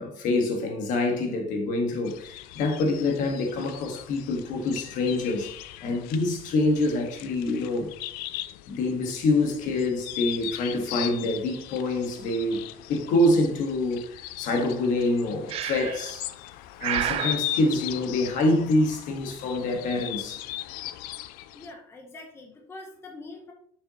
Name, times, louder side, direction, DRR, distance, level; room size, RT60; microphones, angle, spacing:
voice 1, 0.0-5.5 5.8-7.9 8.7-16.3 16.8-20.4, left 2 dB, 60° left, 1.3 m, -26 dB
sound 1, 2.0-21.7, left 14 dB, 80° left, 0.4 m, -39 dB
Breathing, 15.5-16.1 16.8-17.4, right 10 dB, 40° right, 0.4 m, -29 dB
voice 2, 21.5-23.5, left 2 dB, 15° left, 0.7 m, -44 dB
6.8 x 5.5 x 2.8 m
cardioid pair, 170°, 15 cm